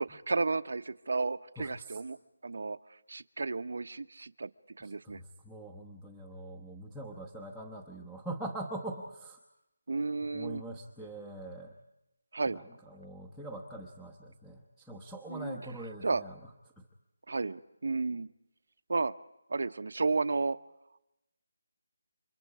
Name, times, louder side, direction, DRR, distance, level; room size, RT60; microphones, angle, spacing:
voice 1, 0.0-2.2 2.4-2.8 3.1-4.5 4.8-5.2 9.9-10.6 12.3-12.6 15.3-15.6 16.0-16.2 17.3-18.3 18.9-19.1 19.5-20.6, right 3 dB, 60° right, 13 dB, 1.0 m, -32 dB
voice 2, 1.6-2.0 4.8-9.4 10.3-11.7 12.4-16.4 16.8-16.9, right 1 dB, ahead, -2 dB, 1.0 m, -43 dB
29.5 x 25.5 x 4.9 m, 0.91 s
figure-of-eight pair, 175°, 0 cm